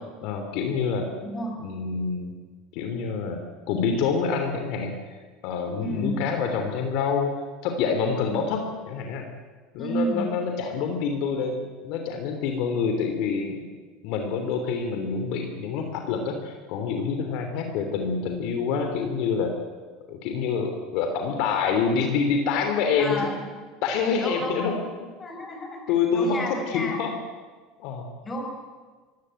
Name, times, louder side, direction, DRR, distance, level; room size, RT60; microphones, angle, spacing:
voice 1, 0.2-1.1 1.6-2.3 2.7-3.4 3.7-4.9 5.4-7.3 7.6-9.3 9.7-13.7 14.0-19.5 20.1-23.3 23.8-24.7 25.9-27.1 27.8-28.0, left 5 dB, 60° left, 5 dB, 3.2 m, -26 dB
voice 2, 1.2-1.6 5.8-6.2 8.3-8.4 9.8-10.3 23.0-23.3 24.2-24.8 25.2-25.8 26.1-27.0 28.2-28.5, equal, 20° left, 2 dB, 6.1 m, -31 dB
24.0 x 16.5 x 9.0 m, 1.4 s
supercardioid pair, 140°, 0 cm